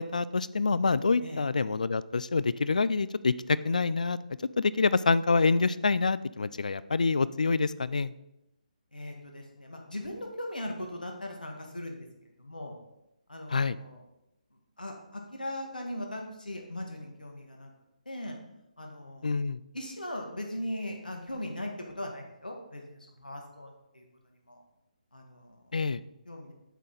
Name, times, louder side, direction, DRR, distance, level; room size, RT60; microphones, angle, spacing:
voice 1, 0.0-4.2 4.6-8.1 13.5-13.8 19.2-19.6 25.7-26.0, left 4 dB, 60° left, 18 dB, 0.3 m, -26 dB
voice 2, 8.9-12.7 13.3-14.0 14.8-17.7 18.0-18.4 18.8-19.4 19.7-24.6 25.1-25.8 26.2-26.5, left 1 dB, 75° left, 2 dB, 1.6 m, -39 dB
8.1 x 6.3 x 3.9 m, 0.89 s
figure-of-eight pair, 140°, 5 cm